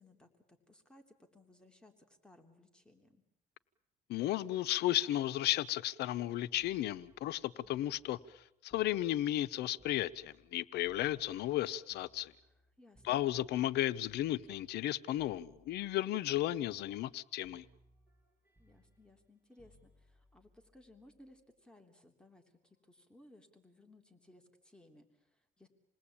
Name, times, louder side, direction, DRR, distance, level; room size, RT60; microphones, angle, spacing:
voice 1, 0.0-3.2 12.4-13.2 18.6-25.7, left 1 dB, 5° left, 3.2 m, -62 dB
voice 2, 4.1-8.2 8.6-12.3 13.0-17.6, left 14 dB, 80° left, 0.9 m, -34 dB
sound 1, 6.6-10.5 10.8-14.9 15.2-16.0 16.3-17.2 17.4-21.4 22.6-22.9, equal, 10° right, 6.2 m, -67 dB
28.5 x 20.0 x 8.6 m
cardioid pair, 110°, 17 cm